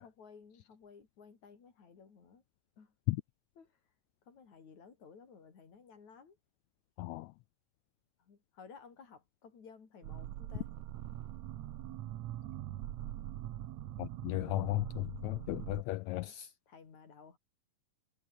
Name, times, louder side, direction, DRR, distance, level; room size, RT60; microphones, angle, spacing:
voice 1, 0.0-2.4 2.8-2.9 3.6-3.8 4.3-6.4 8.2-10.7 16.2-16.3 16.7-17.4, left 5 dB, 60° left, 5.1 m, -56 dB
voice 2, 7.0-7.3 14.0-16.5, left 20 dB, 90° left, 1.6 m, -35 dB
sound 1, 10.0-15.8, right 13 dB, 65° right, 2.1 m, -43 dB
omnidirectional pair, 3.7 m